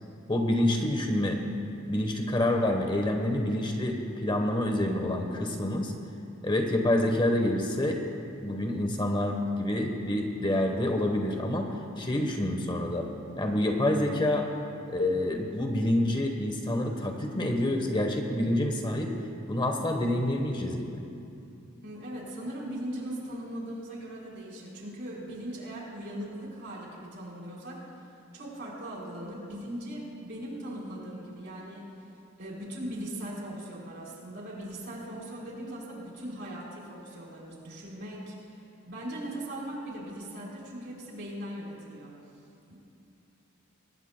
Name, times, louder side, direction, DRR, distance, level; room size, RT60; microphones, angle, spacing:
voice 1, 0.3-1.4 1.9-5.9 6.4-8.0 8.4-11.7 12.0-13.1 13.4-14.5 14.9-19.2 19.5-21.0, left 1 dB, 25° left, 3 dB, 1.0 m, -27 dB
voice 2, 21.8-28.1 28.3-31.8 32.4-42.1, right 1 dB, 55° right, -4 dB, 4.2 m, -39 dB
22.5 x 19.0 x 2.2 m, 2.7 s
head